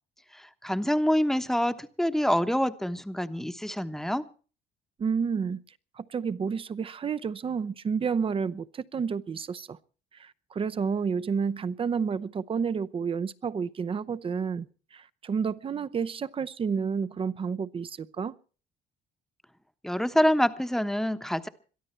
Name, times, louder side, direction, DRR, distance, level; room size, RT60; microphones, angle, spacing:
voice 1, 0.3-4.2 19.8-21.5, equal, ahead, 1.1 m, -26 dB
voice 2, 5.0-5.6 6.0-9.8 10.1-14.7 14.9-18.3, right 6 dB, 30° right, 0.7 m, -30 dB
22.5 x 13.5 x 4.5 m
cardioid pair, 110°, 17 cm